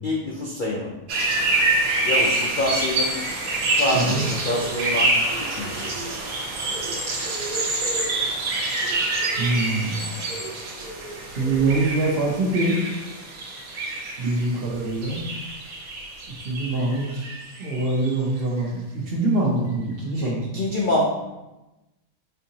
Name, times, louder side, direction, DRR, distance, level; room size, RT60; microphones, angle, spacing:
voice 1, 0.0-0.9 2.0-3.2 3.8-6.0 20.1-21.0, left 1 dB, 65° left, -4 dB, 0.4 m, -26 dB
sound 1, 1.1-18.1, right 2 dB, 70° right, 1.2 m, -26 dB
voice 2, 3.9-4.3 9.4-10.1 11.3-12.8 14.2-15.3 16.4-17.3 17.6-20.7, right 2 dB, 55° right, -3 dB, 0.7 m, -24 dB
4.4 x 2.7 x 2.8 m, 1.0 s
omnidirectional pair, 1.5 m